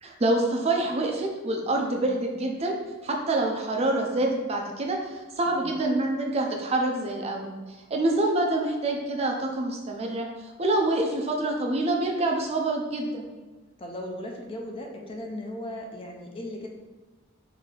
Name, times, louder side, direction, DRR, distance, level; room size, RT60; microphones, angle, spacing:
voice 1, 0.0-2.8 3.0-7.5 7.9-10.3 10.6-13.3, right 2 dB, 30° right, 1 dB, 0.5 m, -26 dB
voice 2, 5.4-5.8 13.8-16.7, left 1 dB, 25° left, 1 dB, 0.5 m, -37 dB
3.9 x 2.7 x 4.8 m, 1.2 s
head